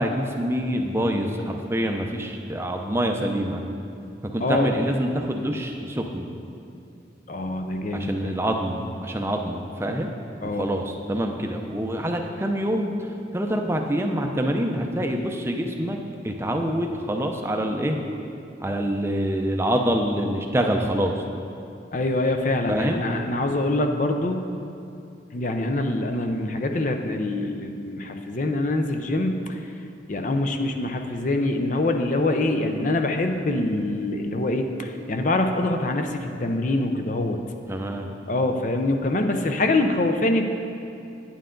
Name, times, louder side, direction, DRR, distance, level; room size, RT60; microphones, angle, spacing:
voice 1, 0.0-3.6 4.3-6.3 7.9-10.1 10.4-12.9 13.3-16.0 16.2-18.0 18.6-21.1 22.7-23.0 37.7-38.1, equal, 15° right, 3 dB, 0.5 m, -26 dB
voice 2, 4.4-4.7 7.3-8.3 10.4-10.7 21.9-24.4 25.3-29.3 30.1-37.4 38.3-40.5, left 2 dB, 40° left, 5 dB, 0.5 m, -24 dB
9.4 x 9.0 x 3.8 m, 2.6 s
head